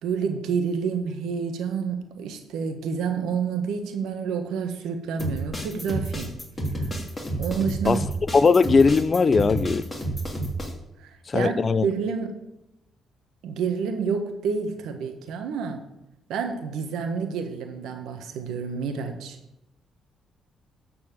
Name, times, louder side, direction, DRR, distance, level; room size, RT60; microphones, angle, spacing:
voice 1, 0.0-6.3 7.4-8.0 11.0-12.4 13.4-15.8 16.3-19.4, right 6 dB, 85° right, 1.5 m, -29 dB
sound 1, 5.2-10.7, right 1 dB, 20° left, 2.9 m, -30 dB
voice 2, 8.3-9.9 11.3-11.9, left 4 dB, 35° left, 0.5 m, -19 dB
12.5 x 4.5 x 7.5 m
cardioid pair, 90°, 0 cm